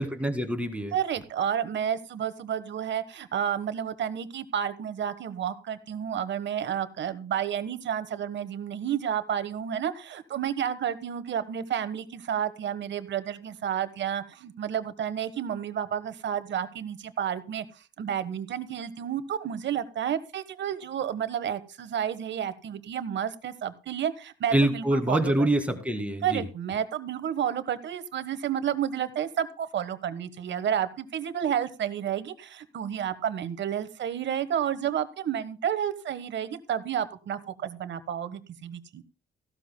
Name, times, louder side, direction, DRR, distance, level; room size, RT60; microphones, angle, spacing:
voice 1, 0.0-0.9 24.5-26.4, right 1 dB, 5° right, 6 dB, 2.1 m, -25 dB
voice 2, 0.9-25.5 26.2-39.0, right 9 dB, 65° right, 12 dB, 1.3 m, -31 dB
16.0 x 13.0 x 2.2 m, 0.34 s
cardioid pair, 90°, 20 cm